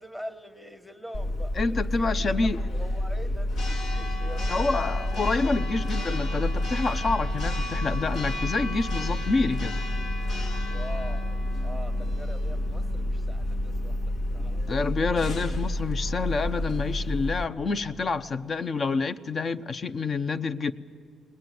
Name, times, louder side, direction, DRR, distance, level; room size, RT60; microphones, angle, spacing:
voice 1, 0.0-4.7 10.7-14.8, equal, 10° left, 1.5 m, -43 dB
Church bell, 1.1-17.4, left 1 dB, 70° left, 1.7 m, -29 dB
voice 2, 1.6-2.6 4.5-9.8 14.7-20.7, left 4 dB, 40° left, 0.7 m, -28 dB
20.0 x 19.5 x 9.3 m
cardioid pair, 90°, 0 cm